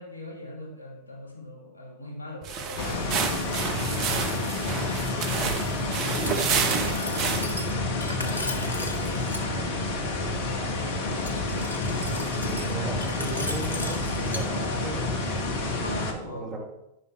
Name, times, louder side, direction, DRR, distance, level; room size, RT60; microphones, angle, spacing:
voice 1, 0.0-3.4 4.2-4.9 5.1-7.4 7.9-11.7 14.5-15.0 15.8-16.6, left 1 dB, 90° right, 1 dB, 2.4 m, -43 dB
sound 1, 2.4-7.7, right 6 dB, 40° right, 1.1 m, -30 dB
sound 2, 2.8-16.1, left 2 dB, 55° left, 1.5 m, -29 dB
Glass, 6.1-9.4 11.1-14.4, left 1 dB, 85° left, 1.0 m, -38 dB
voice 2, 12.5-15.5 16.1-16.6, right 2 dB, 20° right, -1 dB, 2.8 m, -38 dB
10.5 x 5.6 x 4.9 m, 0.84 s
figure-of-eight pair, 90°, 0 cm